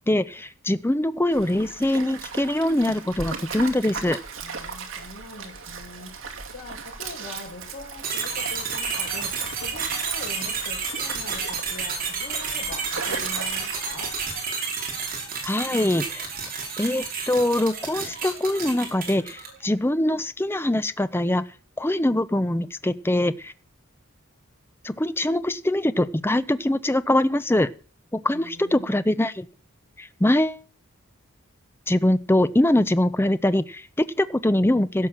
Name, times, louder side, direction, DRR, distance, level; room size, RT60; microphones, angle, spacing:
voice 1, 0.1-4.2 15.4-16.3 16.8-21.4 21.8-23.5 24.8-27.7 28.1-29.4 30.0-30.6 31.9-35.1, left 1 dB, 10° left, 13 dB, 0.6 m, -23 dB
Stream, 1.3-14.4, right 5 dB, 70° right, 2.5 m, -36 dB
voice 2, 4.4-6.2 6.5-14.2 28.3-29.3, left 2 dB, 65° left, 0 dB, 5.1 m, -42 dB
sound 1, 8.0-19.6, right 5 dB, 45° right, 5.6 m, -31 dB
16.5 x 5.9 x 7.3 m, 0.38 s
head